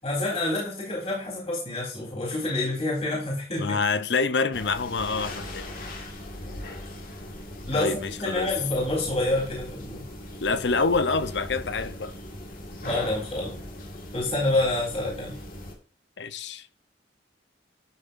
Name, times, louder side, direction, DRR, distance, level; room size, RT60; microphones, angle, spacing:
voice 1, 0.0-3.8 7.7-10.0 12.8-13.6 14.1-15.4, left 2 dB, 35° left, 3.7 m, -27 dB
voice 2, 3.6-5.7 7.7-8.5 10.4-12.2 16.2-16.7, left 4 dB, 75° left, 0.7 m, -26 dB
sound 1, 4.5-15.8, left 1 dB, 50° left, 1.8 m, -39 dB
12.0 x 6.8 x 2.6 m
head